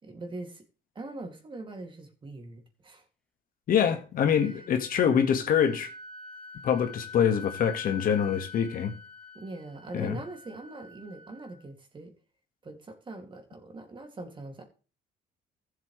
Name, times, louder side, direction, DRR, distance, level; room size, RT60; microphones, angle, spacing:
voice 1, 0.0-0.6 0.9-3.0 4.4-4.6 9.3-12.1 12.6-14.6, right 2 dB, 30° right, 2.6 m, -42 dB
voice 2, 3.7-5.9 6.6-8.9 9.9-10.2, left 8 dB, 55° left, 1.8 m, -25 dB
Wind instrument woodwind instrument, 3.9-11.6, left 5 dB, 5° left, 1.8 m, -46 dB
15.0 x 7.4 x 3.3 m
cardioid pair, 110°, 17 cm